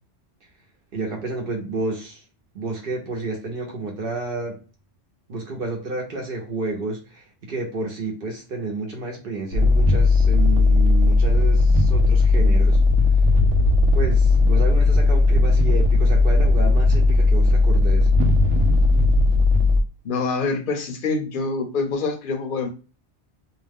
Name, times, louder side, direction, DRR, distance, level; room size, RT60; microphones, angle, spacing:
voice 1, 0.9-2.2 2.5-4.6 5.3-12.8 13.9-18.1, right 3 dB, 55° right, 1 dB, 0.8 m, -30 dB
sound 1, 9.5-19.8, left 3 dB, 85° right, 0.9 m, -17 dB
voice 2, 20.0-22.7, left 4 dB, 55° left, 6 dB, 0.7 m, -25 dB
2.6 x 2.1 x 3.4 m, 0.35 s
omnidirectional pair, 1.2 m